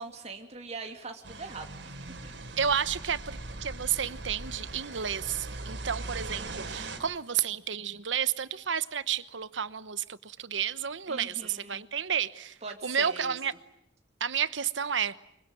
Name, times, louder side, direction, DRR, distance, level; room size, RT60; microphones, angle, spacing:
voice 1, 0.0-2.0 2.2-2.3 11.1-11.8 12.6-13.4, right 4 dB, 35° right, 4 dB, 2.8 m, -42 dB
sound 1, 1.2-7.0, right 2 dB, 70° right, 3.9 m, -40 dB
voice 2, 2.6-13.5 14.2-15.1, right 8 dB, 90° right, 15 dB, 1.0 m, -31 dB
25.0 x 23.5 x 9.0 m, 0.76 s
head